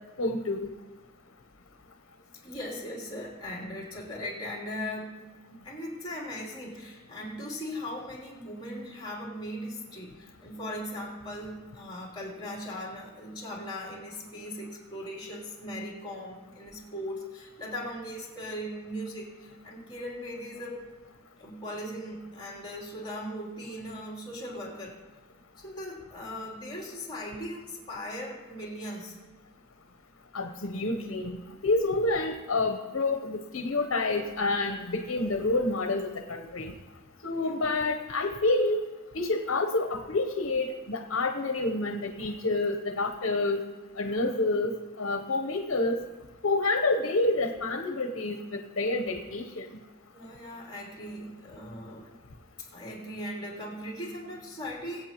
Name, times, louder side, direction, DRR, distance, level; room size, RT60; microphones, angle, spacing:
voice 1, 0.2-0.7 30.3-36.7 37.2-38.8 39.1-43.6 44.0-46.0 46.4-49.7, left 2 dB, 70° left, 4 dB, 0.9 m, -28 dB
voice 2, 2.4-5.2 5.6-20.8 21.4-25.0 25.6-29.2 37.3-37.6 50.1-52.1 52.7-55.1, equal, 20° left, -4 dB, 3.3 m, -39 dB
22.0 x 8.3 x 3.0 m, 1.2 s
head